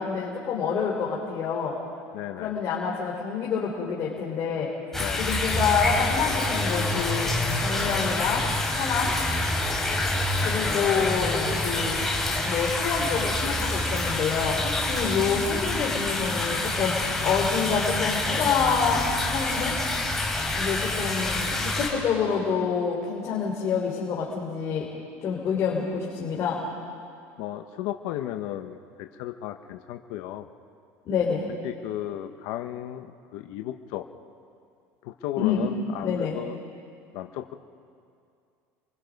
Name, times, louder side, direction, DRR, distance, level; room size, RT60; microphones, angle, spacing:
voice 1, 0.0-1.7 2.4-4.7 5.2-7.3 7.6-8.4 8.7-9.1 10.4-12.0 12.4-17.0 17.2-19.8 20.5-24.9 25.2-26.6 31.0-31.4 35.4-35.7 36.0-36.4, left 6 dB, 45° left, -3 dB, 3.9 m, -27 dB
voice 2, 2.1-2.5 5.0-5.3 10.7-11.0 15.0-15.2 27.4-30.4 31.6-34.0 35.0-36.6 37.1-37.5, left 13 dB, 70° left, 6 dB, 1.1 m, -35 dB
sound 1, 4.9-21.9, left 2 dB, 5° left, 4.7 m, -27 dB
29.0 x 23.5 x 5.4 m, 2.4 s
cardioid pair, 135°, 7 cm